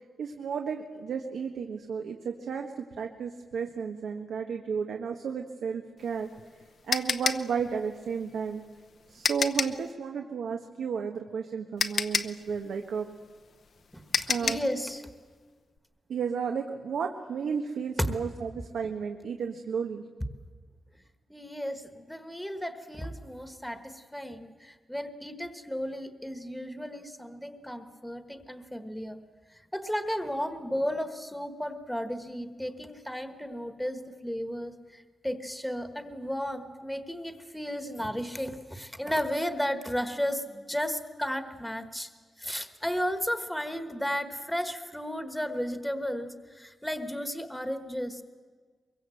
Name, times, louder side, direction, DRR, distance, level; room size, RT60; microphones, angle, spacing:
voice 1, 0.2-6.3 6.9-8.6 9.1-13.1 14.3-14.6 16.1-20.0, right 6 dB, 90° right, 3 dB, 1.5 m, -33 dB
sound 1, 6.0-9.9 11.3-11.4 11.8-14.8, left 5 dB, 50° left, 0.8 m, -30 dB
voice 2, 13.9-15.0 21.3-29.2 29.7-42.1 42.4-48.2, equal, ahead, 8 dB, 1.3 m, -34 dB
23.5 x 23.0 x 7.8 m, 1.5 s
wide cardioid pair, 175°, 0 cm